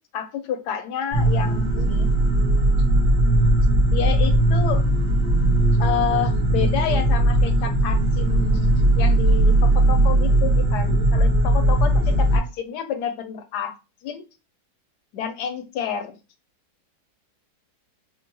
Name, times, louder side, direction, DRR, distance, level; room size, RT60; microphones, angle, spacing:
voice 1, 0.1-2.1 3.9-4.8 5.8-8.7 9.0-13.8 14.0-14.2 15.1-16.2, left 8 dB, 75° left, 8 dB, 1.1 m, -29 dB
sound 1, 1.1-12.4, right 1 dB, 80° right, 1.9 m, -18 dB
5.2 x 2.1 x 2.8 m, 0.30 s
omnidirectional pair, 1.8 m